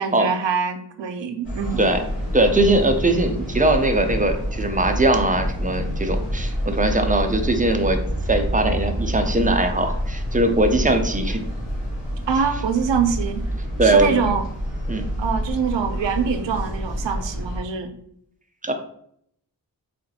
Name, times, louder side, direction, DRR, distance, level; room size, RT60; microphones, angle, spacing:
voice 1, 0.0-1.8 12.3-13.4 13.8-14.5 15.2-17.9, right 6 dB, 80° right, 7 dB, 0.5 m, -24 dB
sound 1, 1.4-17.6, equal, 85° left, 1.4 m, -27 dB
voice 2, 2.3-11.4 13.8-14.1 14.9-15.0 18.6-18.7, right 2 dB, 20° right, 6 dB, 0.4 m, -20 dB
3.8 x 2.5 x 2.7 m, 0.69 s
wide cardioid pair, 65°, 43 cm